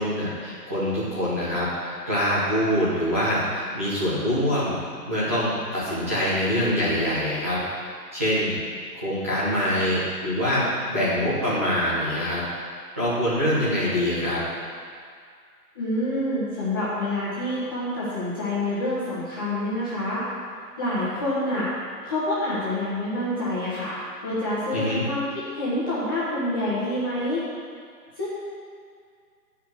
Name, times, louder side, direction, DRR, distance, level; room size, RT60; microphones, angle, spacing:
voice 1, 0.0-4.8 5.0-7.6 8.1-8.6 8.9-12.4 12.9-14.4 24.7-25.0, equal, 10° right, -12 dB, 0.7 m, -24 dB
voice 2, 15.7-20.2 20.8-21.7 22.1-27.4 28.2-28.3, left 1 dB, 15° left, -11 dB, 0.9 m, -27 dB
10.0 x 4.9 x 4.6 m, 2.1 s
figure-of-eight pair, 155°, 49 cm